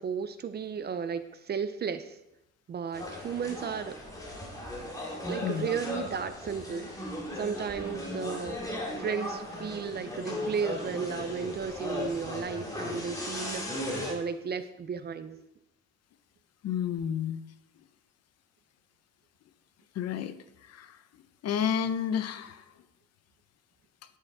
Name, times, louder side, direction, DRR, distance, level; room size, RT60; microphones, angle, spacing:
voice 1, 0.0-2.2 2.7-4.0 5.3-6.9 7.3-8.6 9.0-15.4, right 6 dB, 35° right, 12 dB, 0.5 m, -34 dB
sound 1, 2.9-14.1, left 1 dB, 10° left, 2.1 m, -37 dB
voice 2, 16.6-17.4 20.0-20.3 20.7-21.0 21.4-22.6, left 8 dB, 55° left, 11 dB, 0.7 m, -30 dB
10.0 x 6.6 x 4.8 m, 0.88 s
cardioid pair, 160°, 29 cm